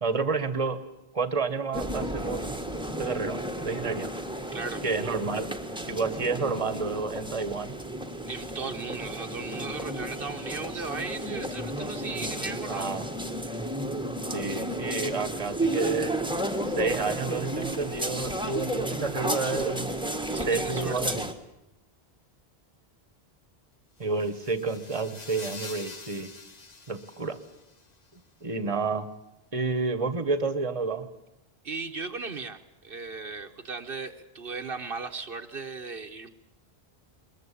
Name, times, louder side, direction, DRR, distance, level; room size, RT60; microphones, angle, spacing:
voice 1, 0.0-0.8 1.1-2.5 3.0-4.1 4.8-5.5 5.9-7.8 10.8-10.9 12.7-13.1 14.3-16.1 16.6-19.9 20.4-21.2 24.0-26.3 26.9-27.4 28.4-29.1 29.5-31.1, right 4 dB, 35° right, 12 dB, 1.4 m, -30 dB
sound 1, 1.7-21.3, right 1 dB, 5° right, 1.5 m, -33 dB
voice 2, 4.5-4.8 8.3-12.9 20.3-21.2 31.6-36.3, right 4 dB, 65° right, 5 dB, 1.3 m, -37 dB
sound 2, 10.4-15.3, equal, 65° left, 1.6 m, -49 dB
sound 3, 24.0-27.9, left 3 dB, 40° left, 1.4 m, -45 dB
22.0 x 21.5 x 8.4 m, 0.94 s
omnidirectional pair, 1.0 m